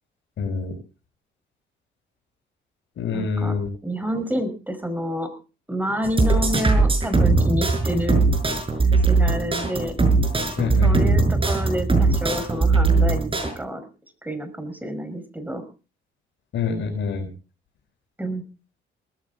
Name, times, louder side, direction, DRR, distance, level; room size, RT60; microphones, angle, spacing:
voice 1, 0.4-0.7 3.0-3.7 10.6-11.0 16.5-17.3, left 5 dB, 70° left, -3 dB, 6.6 m, -26 dB
voice 2, 3.1-3.5 3.8-5.3 5.7-8.2 8.9-10.0 10.7-13.8 14.2-15.6 18.2-18.4, equal, 10° right, 9 dB, 5.3 m, -28 dB
sound 1, 6.0-13.5, right 3 dB, 25° right, 6.5 m, -19 dB
19.5 x 15.0 x 3.9 m, 0.35 s
cardioid pair, 90°, 20 cm